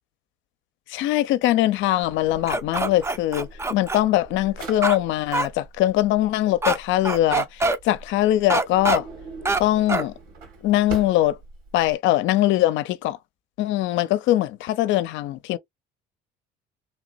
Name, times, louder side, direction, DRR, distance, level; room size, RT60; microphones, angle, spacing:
voice 1, 0.9-9.1 9.6-10.1 10.6-11.4 11.7-13.2 13.6-15.6, left 14 dB, 70° left, 0.5 m, -22 dB
Drawer open or close, 2.0-12.0, right 3 dB, 85° right, 1.6 m, -42 dB
sound 1, 2.5-4.0 4.8-5.0 5.3-5.5 6.6-6.8 7.0-7.8 8.5-9.0 9.4-9.6 9.9-10.1, right 2 dB, 15° right, 0.5 m, -23 dB
3.2 x 2.9 x 2.3 m
supercardioid pair, 80°, 21 cm